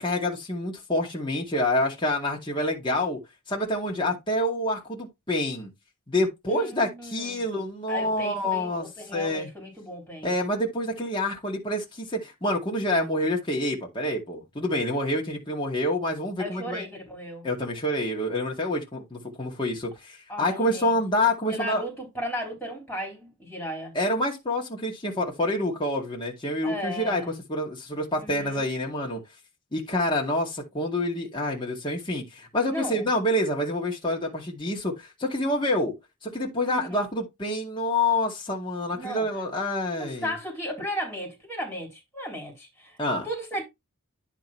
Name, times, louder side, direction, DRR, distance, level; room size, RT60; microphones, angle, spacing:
voice 1, 0.0-3.2 3.5-5.7 6.1-8.9 9.1-9.5 10.2-16.8 17.4-21.8 23.9-27.2 27.5-29.2 29.7-35.9 36.2-40.3 43.0-43.3, left 1 dB, 20° left, 2.2 m, -27 dB
voice 2, 6.5-7.4 7.9-10.3 16.4-17.5 20.3-21.0 21.5-23.9 26.6-27.3 28.2-28.6 32.7-33.1 36.7-37.0 38.9-39.4 39.9-43.0 43.2-43.6, equal, 5° left, 3.9 m, -35 dB
10.5 x 3.7 x 4.5 m
head